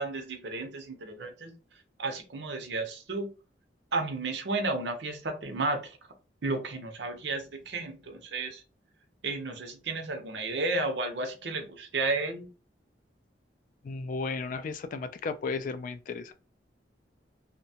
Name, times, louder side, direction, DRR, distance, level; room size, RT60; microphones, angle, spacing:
voice 1, 0.0-1.5 2.0-3.3 3.9-6.0 6.4-8.6 9.2-12.5, right 3 dB, 70° right, 0.7 m, -32 dB
voice 2, 13.8-16.3, left 4 dB, 50° left, 0.3 m, -34 dB
2.7 x 2.2 x 2.7 m
head